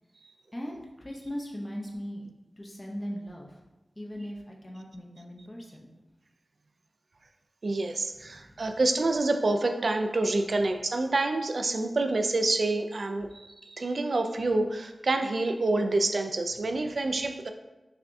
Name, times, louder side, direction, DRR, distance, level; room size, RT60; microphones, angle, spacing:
voice 1, 0.5-2.3 2.6-3.6 4.0-5.9 8.2-8.6 16.6-16.7, equal, 25° left, -1 dB, 0.5 m, -39 dB
voice 2, 7.6-17.5, right 2 dB, 65° right, 6 dB, 0.3 m, -27 dB
5.7 x 2.3 x 2.6 m, 1.1 s
wide cardioid pair, 60°, 0 cm